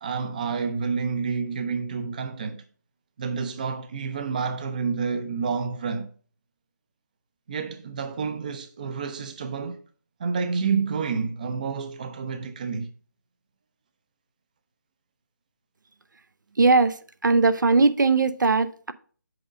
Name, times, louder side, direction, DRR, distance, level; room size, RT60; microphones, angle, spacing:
voice 1, 0.0-2.6 3.2-6.1 7.5-9.8 10.2-12.9, right 5 dB, 25° right, 0.5 m, -29 dB
voice 2, 16.6-17.0 17.2-18.9, right 3 dB, 80° right, 0.7 m, -19 dB
7.8 x 3.7 x 5.0 m
figure-of-eight pair, 165°, 10 cm